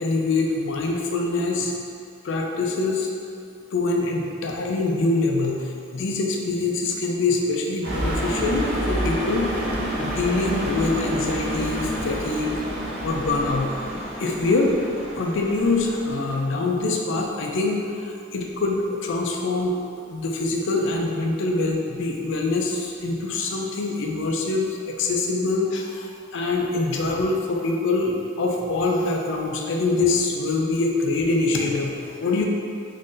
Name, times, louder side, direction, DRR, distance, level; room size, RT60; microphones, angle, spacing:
voice 1, 0.0-1.8 2.2-3.1 3.7-9.5 10.0-12.6 13.0-13.7 14.2-14.7 15.1-19.7 20.1-32.5, left 3 dB, 65° left, 1 dB, 0.4 m, -24 dB
sound 1, 7.8-16.4, right 1 dB, 55° right, 1.0 m, -29 dB
3.1 x 2.6 x 3.7 m, 2.4 s
head